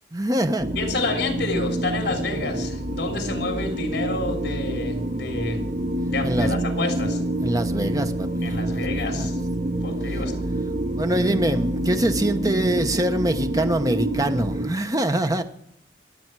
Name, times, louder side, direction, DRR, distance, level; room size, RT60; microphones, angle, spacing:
voice 1, 0.1-0.7 2.3-2.7 6.2-6.7 7.4-9.3 11.0-15.4, right 1 dB, 20° right, 0.9 m, -24 dB
sound 1, 0.6-14.7, right 1 dB, 45° right, 1.1 m, -27 dB
voice 2, 0.7-5.7 6.0-7.2 8.4-9.4 9.8-10.3, left 3 dB, 65° left, 3.4 m, -29 dB
26.0 x 8.7 x 4.7 m
head